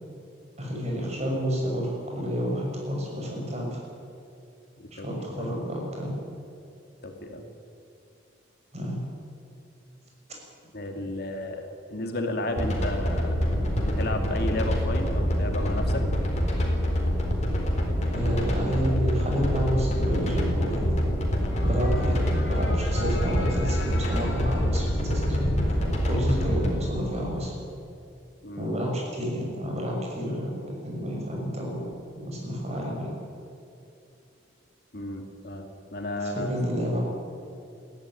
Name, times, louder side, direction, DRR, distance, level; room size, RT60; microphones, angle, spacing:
voice 1, 0.6-3.9 4.9-6.2 8.7-9.1 18.1-21.0 21.6-25.6 26.1-27.5 28.6-30.6 30.8-31.8 32.2-33.1 36.2-37.0, equal, 35° right, -1 dB, 6.3 m, -29 dB
voice 2, 4.8-5.5 7.0-7.4 10.7-11.6 11.9-13.4 13.8-16.0 28.4-28.7 34.9-35.7 35.9-36.5, left 1 dB, 55° left, 4 dB, 2.6 m, -33 dB
sound 1, 12.6-26.7, equal, 40° left, 4.2 m, -26 dB
sound 2, 21.5-27.5, left 1 dB, 80° left, 2.4 m, -36 dB
21.0 x 14.5 x 10.0 m, 2.6 s
head